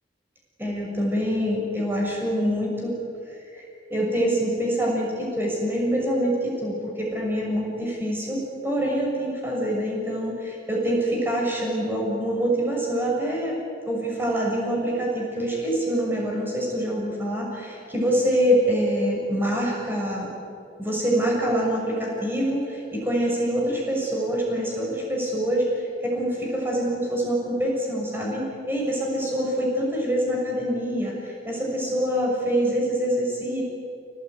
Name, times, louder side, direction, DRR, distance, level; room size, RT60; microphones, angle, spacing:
voice 1, 0.6-3.0 3.5-13.6 13.8-20.3 20.8-33.6, equal, 10° right, -3 dB, 6.4 m, -25 dB
29.5 x 18.5 x 9.4 m, 2.5 s
head